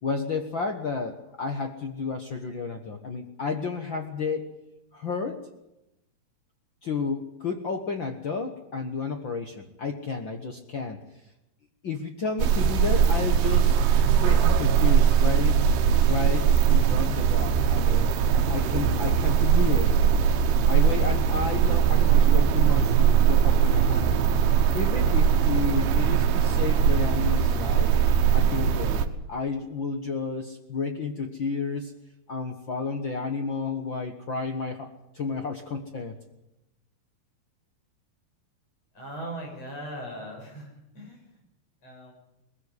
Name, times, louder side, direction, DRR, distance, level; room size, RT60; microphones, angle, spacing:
voice 1, 0.0-4.6 4.9-5.4 6.8-11.0 11.8-15.7 16.1-18.1 18.5-20.0 20.7-24.3 24.7-27.9 28.3-31.9 32.3-36.2, left 4 dB, 65° left, 5 dB, 1.2 m, -32 dB
sound 1, 12.4-29.1, right 8 dB, 85° right, 3.3 m, -21 dB
voice 2, 39.0-40.7 40.9-41.2 41.8-42.1, right 1 dB, 40° left, 1 dB, 7.5 m, -38 dB
21.0 x 16.0 x 9.8 m, 0.90 s
omnidirectional pair, 4.4 m